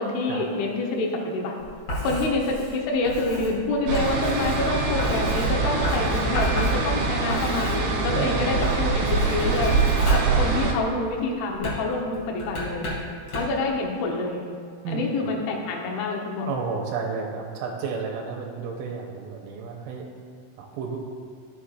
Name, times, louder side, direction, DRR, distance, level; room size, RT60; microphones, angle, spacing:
voice 1, 0.0-1.6 2.0-9.7 10.1-12.9 13.3-14.4 14.9-16.5, left 2 dB, 80° left, -1 dB, 2.2 m, -27 dB
Writing, 1.6-8.2 8.5-11.0 11.5-13.7, equal, 45° left, 2.0 m, -32 dB
sound 1, 3.9-10.7, right 3 dB, 65° right, 2.7 m, -24 dB
voice 2, 8.1-8.6 10.2-10.4 14.8-15.3 16.5-20.1 20.6-21.0, right 5 dB, 85° right, 0 dB, 3.0 m, -32 dB
14.5 x 6.5 x 2.4 m, 2.3 s
omnidirectional pair, 6.0 m